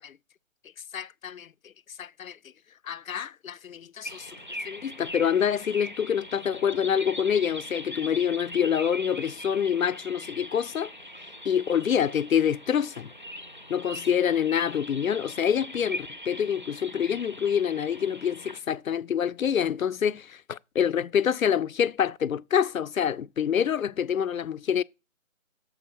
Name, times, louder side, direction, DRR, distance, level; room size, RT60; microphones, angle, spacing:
voice 1, 0.9-1.5 2.0-2.4 2.8-4.3 4.6-10.9 11.4-13.1 13.7-24.8, left 8 dB, 75° left, 0.5 m, -26 dB
sound 1, 4.0-18.6, equal, 35° right, 0.4 m, -41 dB
7.1 x 4.8 x 6.0 m
figure-of-eight pair, 155°, 42 cm